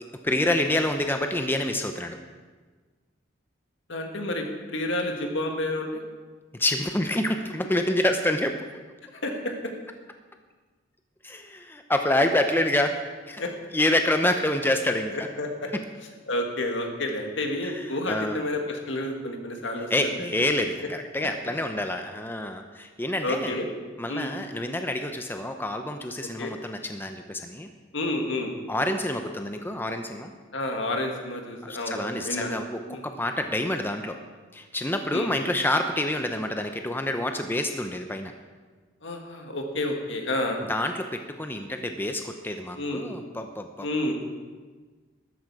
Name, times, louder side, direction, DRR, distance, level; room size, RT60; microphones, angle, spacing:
voice 1, 0.2-2.2 6.5-8.6 11.2-12.9 13.2-13.4 13.7-15.1 17.6-18.4 19.9-23.6 24.0-27.7 28.7-30.3 31.7-34.2 34.5-38.3 40.7-43.9, left 1 dB, 10° left, 6 dB, 0.6 m, -27 dB
voice 2, 3.9-6.0 9.2-9.5 13.4-13.5 15.1-15.7 16.3-20.3 23.2-23.7 24.1-24.3 26.2-26.5 27.9-28.5 30.5-32.5 32.9-33.0 35.1-35.3 39.0-40.6 42.7-43.1 43.8-44.2, left 1 dB, 70° left, 3 dB, 1.9 m, -30 dB
13.0 x 12.5 x 4.8 m, 1.4 s
head